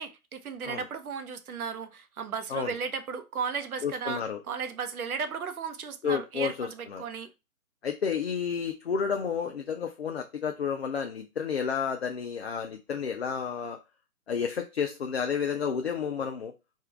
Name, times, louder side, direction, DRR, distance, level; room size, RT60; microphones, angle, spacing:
voice 1, 0.0-7.3, right 6 dB, 70° right, 0.8 m, -35 dB
voice 2, 3.8-4.4 6.0-7.0 7.8-13.8 14.3-16.5, left 6 dB, 45° left, 0.4 m, -31 dB
3.6 x 2.4 x 4.4 m
hypercardioid pair, 160°, 45 cm